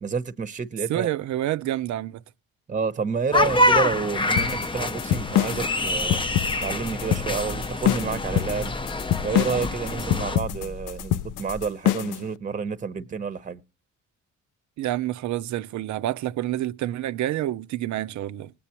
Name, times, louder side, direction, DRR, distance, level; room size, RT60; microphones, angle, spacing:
voice 1, 0.0-1.1 2.7-6.2 6.6-8.7 9.2-13.6, right 5 dB, 25° right, 0.8 m, -29 dB
voice 2, 0.9-2.2 14.8-18.5, right 13 dB, 70° right, 0.6 m, -28 dB
sound 1, 3.3-10.4, left 2 dB, 15° left, 0.6 m, -26 dB
sound 2, 4.4-12.2, left 13 dB, 85° left, 0.5 m, -26 dB
sound 3, 5.8-11.7, left 2 dB, 40° left, 0.9 m, -40 dB
19.5 x 8.4 x 2.9 m
cardioid pair, 90°, 30 cm